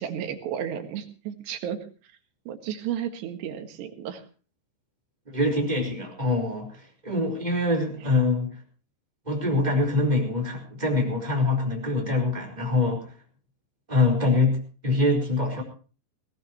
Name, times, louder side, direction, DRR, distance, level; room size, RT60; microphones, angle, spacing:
voice 1, 0.0-1.8 2.5-4.2, right 9 dB, 70° right, 5 dB, 3.8 m, -33 dB
voice 2, 5.3-8.6 9.2-13.1 13.9-15.6, left 2 dB, 10° right, 1 dB, 4.1 m, -24 dB
19.5 x 18.5 x 3.0 m, 0.37 s
omnidirectional pair, 5.0 m